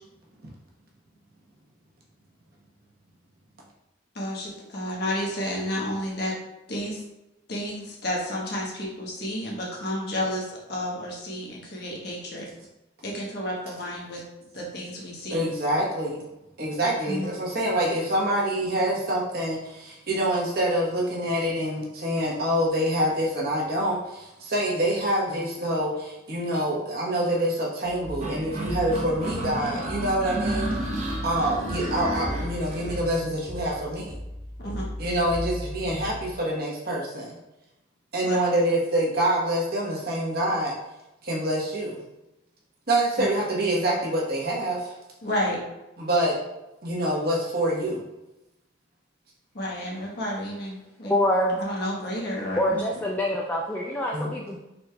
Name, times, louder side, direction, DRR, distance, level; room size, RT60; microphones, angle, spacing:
voice 1, 4.1-6.4 6.7-7.0 7.5-12.5 13.0-14.2 14.5-15.4 17.1-17.3 34.6-34.8 38.2-38.4 45.2-45.6 49.5-51.1 51.6-53.0, left 1 dB, 60° left, -3 dB, 1.2 m, -31 dB
voice 2, 15.3-16.2 16.6-30.7 31.2-34.1 35.0-37.3 38.1-40.7 41.2-42.0 42.9-44.9 46.0-46.4 46.8-48.0 54.1-54.3, right 1 dB, 55° right, -3 dB, 1.1 m, -26 dB
sound 1, 27.8-36.3, equal, 20° right, 1.3 m, -37 dB
sound 2, 28.2-33.0, right 1 dB, 40° right, 0.7 m, -32 dB
voice 3, 51.0-51.6 52.6-54.6, left 1 dB, 10° left, -2 dB, 0.4 m, -25 dB
4.8 x 4.0 x 2.3 m, 0.95 s
head